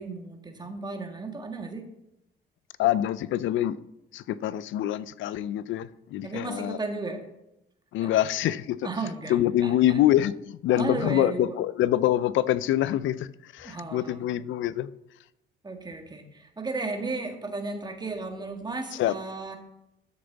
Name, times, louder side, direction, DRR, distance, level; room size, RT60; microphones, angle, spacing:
voice 1, 0.0-1.8 6.2-7.2 8.0-8.1 8.8-10.0 10.7-11.6 13.6-14.3 15.6-19.6, right 3 dB, 20° right, 1.7 m, -34 dB
voice 2, 2.8-3.8 4.1-6.8 7.9-8.8 9.3-13.3 13.5-14.9 19.0-19.1, left 13 dB, 80° left, 0.5 m, -25 dB
12.5 x 6.8 x 4.0 m
cardioid pair, 90°, 20 cm